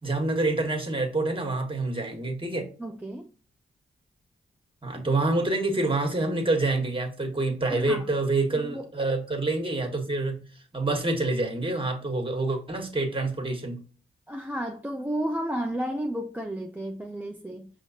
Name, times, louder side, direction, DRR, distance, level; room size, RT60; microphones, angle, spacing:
voice 1, 0.0-2.7 4.8-10.4 10.7-13.8, right 2 dB, 25° right, 1.6 m, -27 dB
voice 2, 2.8-3.3 7.7-8.1 8.5-8.8 14.3-17.7, right 1 dB, 10° right, 0.6 m, -32 dB
5.5 x 3.0 x 2.8 m
supercardioid pair, 45°, 21 cm